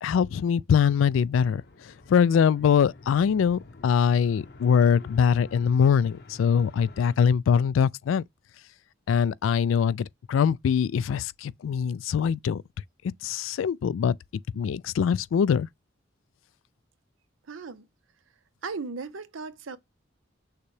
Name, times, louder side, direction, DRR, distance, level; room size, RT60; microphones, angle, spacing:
voice 1, 0.0-8.2 9.1-12.6 13.2-14.1 14.5-15.7, left 7 dB, 85° left, 0.3 m, -23 dB
sound 1, 1.4-7.2, left 3 dB, 55° left, 0.7 m, -48 dB
voice 2, 17.5-17.8 18.6-19.8, right 4 dB, 90° right, 0.6 m, -36 dB
6.6 x 2.2 x 3.2 m
head